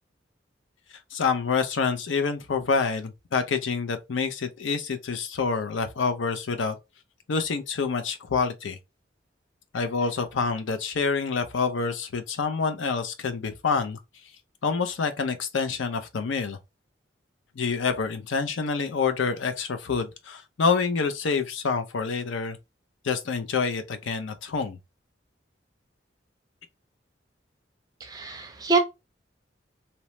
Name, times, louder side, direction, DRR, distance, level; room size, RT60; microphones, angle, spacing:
voice 1, 1.1-6.8 7.3-8.8 9.7-14.0 14.6-16.6 17.6-22.6 23.0-24.8, left 5 dB, 85° left, 0.5 m, -27 dB
voice 2, 28.0-28.8, right 4 dB, 20° right, 0.4 m, -25 dB
2.9 x 2.0 x 3.0 m
head